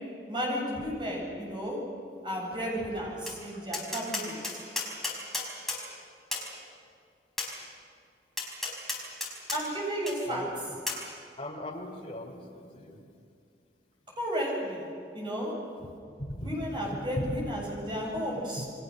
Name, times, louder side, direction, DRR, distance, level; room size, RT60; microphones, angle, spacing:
voice 1, 0.3-1.8 2.2-4.4 9.5-10.5 14.2-14.9 15.1-15.5 16.4-18.7, equal, 25° right, -2 dB, 7.7 m, -33 dB
Tap, 3.3-3.4 3.7-5.8 6.3-6.5 7.4-7.5 8.4-9.6 10.1-10.2 10.9-11.0, left 3 dB, ahead, 4.8 m, -33 dB
voice 2, 11.4-13.0 16.2-17.4 18.6-18.7, equal, 30° left, 1 dB, 3.7 m, -38 dB
29.0 x 23.0 x 6.7 m, 2.3 s
head